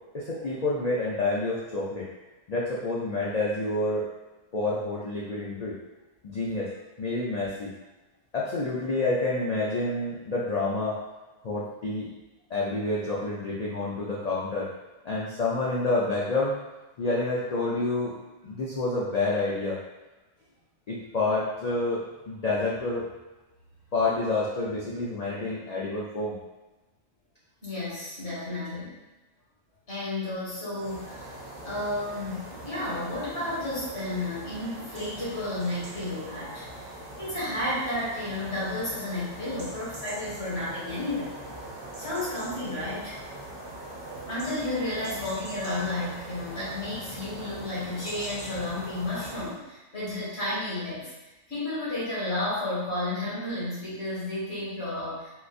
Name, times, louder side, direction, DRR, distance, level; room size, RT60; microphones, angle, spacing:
voice 1, 0.1-2.1 2.5-4.1 4.5-5.8 6.2-6.7 7.0-7.7 8.3-11.0 11.4-12.1 12.5-14.7 15.0-16.6 17.0-18.1 18.4-19.8 20.9-23.0 23.9-26.4, left 2 dB, 80° left, -6 dB, 0.3 m, -28 dB
voice 2, 27.6-29.0 29.9-31.4 31.6-41.4 42.0-43.2 44.3-51.1 51.5-55.3, left 1 dB, 55° left, -9 dB, 1.8 m, -32 dB
sound 1, 30.7-49.6, right 1 dB, 65° right, 1.1 m, -42 dB
3.8 x 2.5 x 2.4 m, 1.1 s
omnidirectional pair, 1.3 m